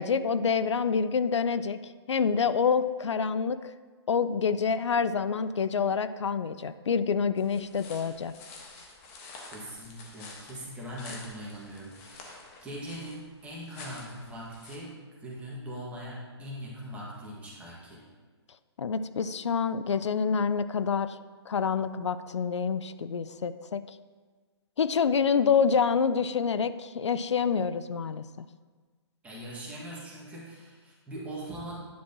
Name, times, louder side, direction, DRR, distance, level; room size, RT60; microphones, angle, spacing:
voice 1, 0.0-3.7 4.1-8.3 18.8-21.2 21.5-24.0 24.8-28.5, left 6 dB, 85° left, 13 dB, 0.4 m, -27 dB
sound 1, 7.4-14.8, left 3 dB, 30° left, 1.3 m, -48 dB
voice 2, 9.5-18.0 29.2-31.8, equal, 10° right, -6 dB, 1.8 m, -41 dB
10.0 x 6.0 x 2.9 m, 1.4 s
hypercardioid pair, 140°, 14 cm